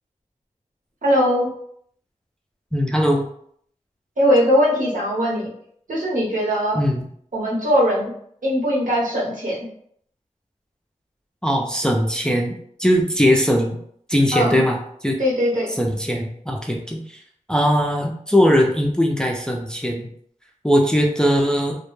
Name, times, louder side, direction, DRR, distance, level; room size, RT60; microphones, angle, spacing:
voice 1, 1.0-1.5 4.2-5.5 5.9-6.8 7.3-8.1 8.4-9.7 14.3-14.6 15.2-15.7, equal, 80° right, -5 dB, 0.9 m, -20 dB
voice 2, 2.7-3.3 6.7-7.1 11.4-12.5 12.8-13.8 14.1-14.8 15.0-15.2 15.8-17.2 17.5-20.1 20.6-21.7, equal, 5° left, 0 dB, 0.4 m, -19 dB
2.1 x 2.1 x 3.0 m, 0.66 s
wide cardioid pair, 60°, 13 cm